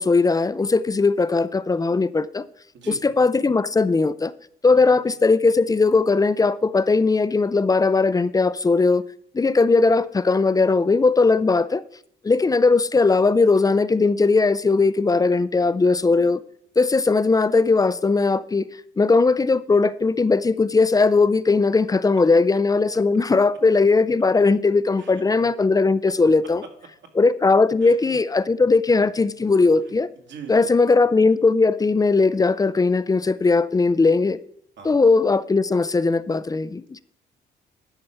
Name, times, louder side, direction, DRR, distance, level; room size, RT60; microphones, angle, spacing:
voice 1, 0.0-2.5 2.9-4.3 4.6-9.0 9.3-11.8 12.2-16.4 16.8-18.7 19.0-26.6 27.1-30.1 30.5-34.4 34.8-37.0, left 3 dB, 20° left, 0.4 m, -19 dB
voice 2, 30.3-30.9 34.8-35.0, right 7 dB, 65° right, 1.9 m, -41 dB
12.0 x 4.5 x 5.6 m
cardioid pair, 90°, 20 cm